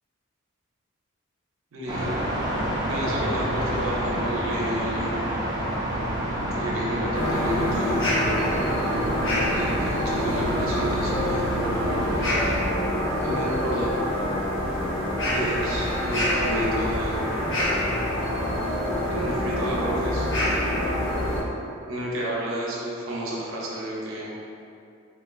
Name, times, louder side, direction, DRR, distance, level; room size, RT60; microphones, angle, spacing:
voice 1, 1.7-2.1 2.9-5.2 6.5-8.0 9.3-11.5 13.2-13.9 15.3-17.2 19.1-20.3 21.9-24.3, equal, 80° right, -4 dB, 0.6 m, -31 dB
sound 1, 1.9-12.6, right 1 dB, 20° right, 0.4 m, -29 dB
sound 2, 7.1-21.4, equal, 60° left, 0.8 m, -26 dB
3.0 x 2.4 x 2.5 m, 2.6 s
head